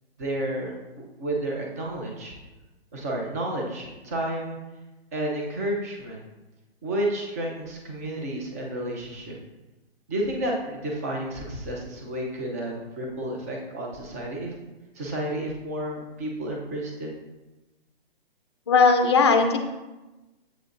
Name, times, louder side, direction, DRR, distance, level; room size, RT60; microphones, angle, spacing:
voice 1, 0.2-0.7 1.2-2.4 2.9-4.6 5.1-6.2 6.8-9.4 10.1-14.5 15.0-17.1, right 1 dB, 15° right, -1 dB, 0.6 m, -31 dB
voice 2, 18.7-19.6, left 4 dB, 25° left, 5 dB, 0.5 m, -18 dB
8.0 x 7.7 x 2.5 m, 1.1 s
hypercardioid pair, 165°, 30 cm